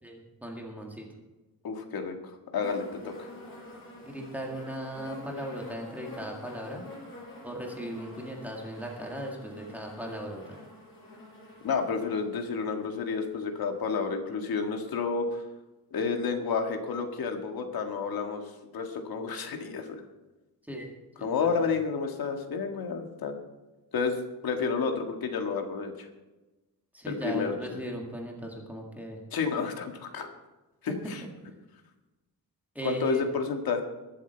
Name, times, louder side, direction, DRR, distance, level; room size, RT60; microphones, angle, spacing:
voice 1, 0.0-1.1 4.0-6.8 7.4-10.6 20.7-20.9 21.2-21.7 26.9-29.2 30.8-31.0 31.2-31.3 32.8-33.3, right 1 dB, 5° right, -1 dB, 1.8 m, -38 dB
voice 2, 1.6-3.3 11.6-15.4 15.9-18.4 18.7-20.0 21.2-23.3 23.9-24.2 24.4-26.1 27.1-27.8 29.3-30.3 30.8-31.2 32.8-33.8, left 5 dB, 70° left, 4 dB, 1.8 m, -30 dB
sound 1, 2.6-13.7 14.6-14.7, left 1 dB, 35° left, 5.7 m, -47 dB
21.5 x 7.4 x 4.5 m, 1.1 s
wide cardioid pair, 165°, 38 cm